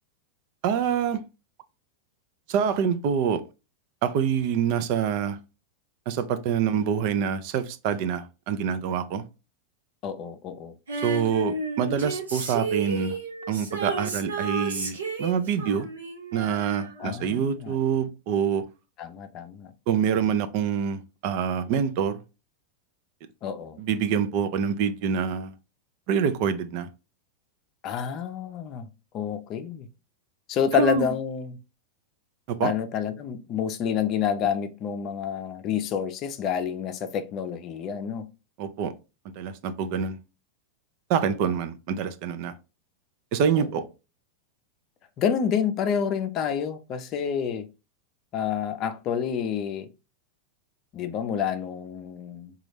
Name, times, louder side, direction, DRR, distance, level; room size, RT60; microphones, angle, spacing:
voice 1, 0.6-1.2 2.5-3.4 4.0-5.4 6.1-9.2 11.0-13.1 13.5-15.9 16.3-18.6 19.9-22.2 23.8-25.5 26.1-26.9 30.7-31.1 32.5-32.7 38.6-38.9 39.4-40.2 41.1-42.5 43.3-43.8, right 7 dB, 55° right, 0.5 m, -26 dB
voice 2, 10.0-10.7 17.0-17.8 19.0-19.7 23.4-23.8 27.8-28.9 29.1-29.9 30.5-31.6 32.6-38.3 43.5-43.7 45.2-47.7 48.3-49.9 50.9-52.5, left 8 dB, 45° left, 0.5 m, -28 dB
Female singing, 10.9-17.5 17.8-17.9, right 3 dB, 90° right, 1.0 m, -32 dB
4.0 x 2.4 x 3.2 m
hypercardioid pair, 100°, 0 cm